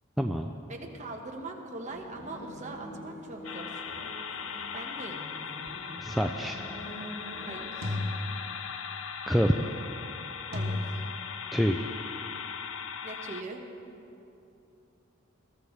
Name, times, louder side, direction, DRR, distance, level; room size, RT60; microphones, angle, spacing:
voice 1, 0.2-0.5 6.0-6.6 9.3-9.6 11.5-11.9, equal, ahead, 2 dB, 0.3 m, -26 dB
voice 2, 0.7-3.9 4.7-5.2 7.4-8.0 10.5-10.9 13.0-13.6, right 2 dB, 35° right, 1 dB, 1.3 m, -41 dB
sound 1, 1.9-7.5, equal, 45° left, 3.4 m, -45 dB
sound 2, 3.4-13.4, left 6 dB, 65° left, 0.6 m, -39 dB
sound 3, 6.0-6.3 7.8-9.0 10.5-11.7, left 1 dB, 75° right, 2.4 m, -35 dB
21.0 x 14.0 x 3.2 m, 2.8 s
head